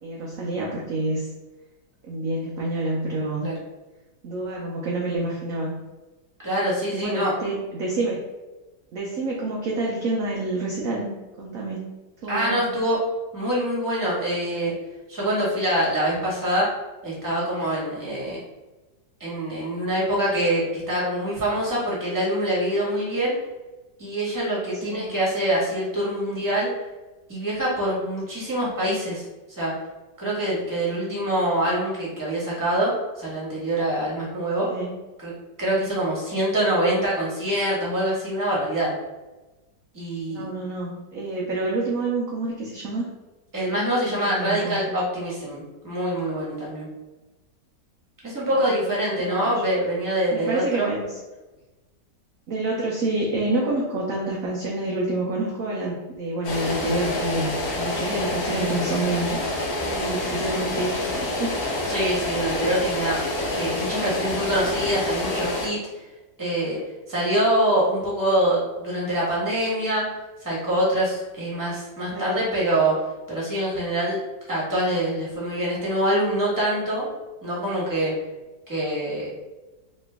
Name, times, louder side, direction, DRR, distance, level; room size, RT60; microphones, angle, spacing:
voice 1, 0.0-1.3 2.0-3.5 4.2-5.8 6.9-8.2 8.9-11.1 11.4-11.9 12.2-12.7 24.8-25.1 34.7-35.0 40.3-43.1 44.1-45.1 48.5-48.7 49.2-49.5 50.3-51.2 52.5-59.4 59.8-61.6 72.1-72.4, right 2 dB, 65° right, -3 dB, 0.9 m, -28 dB
voice 2, 6.4-7.3 12.3-13.0 13.3-14.7 15.1-16.7 17.0-18.4 19.2-23.3 24.0-26.7 27.3-29.2 29.6-29.7 30.2-34.7 35.2-35.3 35.6-38.9 39.9-40.4 43.5-46.9 48.2-50.9 61.8-63.2 63.5-66.0 66.4-66.8 67.1-70.1 70.4-72.9 73.3-74.2 74.5-77.0 77.4-78.1 78.7-79.4, right 1 dB, 10° right, -7 dB, 1.2 m, -25 dB
sound 1, 56.4-65.7, left 2 dB, 65° left, 1.1 m, -27 dB
3.2 x 2.9 x 3.4 m, 1.1 s
omnidirectional pair, 1.9 m